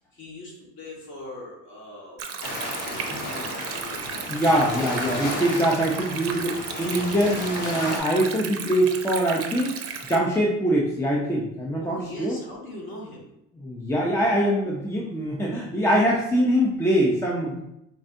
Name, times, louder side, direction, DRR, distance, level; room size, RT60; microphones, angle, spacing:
voice 1, 0.1-2.2 2.8-4.3 11.8-13.2, left 2 dB, 40° left, -3 dB, 1.7 m, -41 dB
Stream, 2.2-10.2, right 6 dB, 50° right, 0.6 m, -35 dB
sound 1, 2.4-8.0, left 1 dB, 75° left, 1.6 m, -33 dB
voice 2, 4.3-12.4 13.6-17.6, right 1 dB, 10° left, -3 dB, 0.6 m, -23 dB
5.4 x 3.5 x 2.6 m, 0.83 s
cardioid pair, 125°, 31 cm